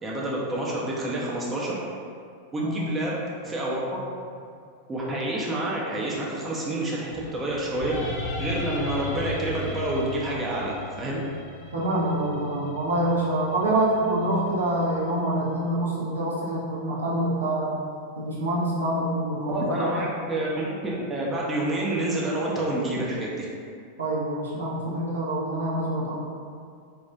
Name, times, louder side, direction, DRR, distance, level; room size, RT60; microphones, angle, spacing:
voice 1, 0.0-1.8 2.5-4.0 4.9-8.0 8.4-11.2 19.5-23.5, right 1 dB, 15° right, -5 dB, 0.4 m, -28 dB
sound 1, 7.1-15.3, left 2 dB, 50° left, 0.4 m, -37 dB
voice 2, 11.7-17.8 18.2-19.9 24.0-26.2, right 1 dB, 70° right, -6 dB, 0.5 m, -26 dB
2.2 x 2.0 x 2.6 m, 2.3 s
figure-of-eight pair, 90°, 0 cm